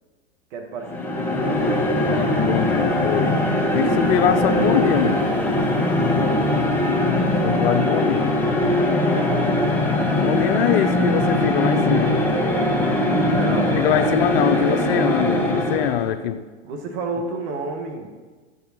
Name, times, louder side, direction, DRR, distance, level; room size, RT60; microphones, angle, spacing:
voice 1, 0.5-1.6 9.1-9.9 13.3-14.6 16.6-18.1, right 3 dB, 60° right, 3 dB, 2.1 m, -31 dB
sound 1, 0.8-16.1, left 1 dB, 5° left, 1.7 m, -21 dB
voice 2, 2.0-3.4 3.7-5.3 7.4-8.3 10.2-12.2 13.7-16.4, left 10 dB, 55° left, 10 dB, 0.7 m, -23 dB
11.5 x 7.1 x 4.4 m, 1.3 s
hypercardioid pair, 105°, 36 cm